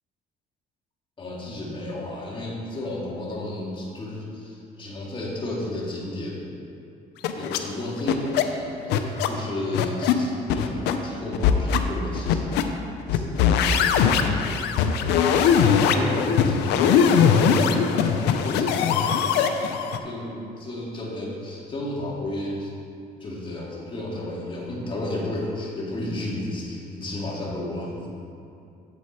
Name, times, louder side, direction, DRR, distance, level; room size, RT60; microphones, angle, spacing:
voice 1, 1.2-6.5 7.3-19.4 20.0-22.7 23.2-28.1, left 1 dB, 30° left, -4 dB, 2.0 m, -33 dB
sound 1, 7.2-7.6 8.1-8.4 8.9-9.3 9.7-10.1 10.5-11.0 11.3-11.8 12.2-12.6 13.1-20.0, left 7 dB, 85° left, 0.6 m, -20 dB
7.9 x 7.8 x 4.3 m, 2.6 s
cardioid pair, 110°, 17 cm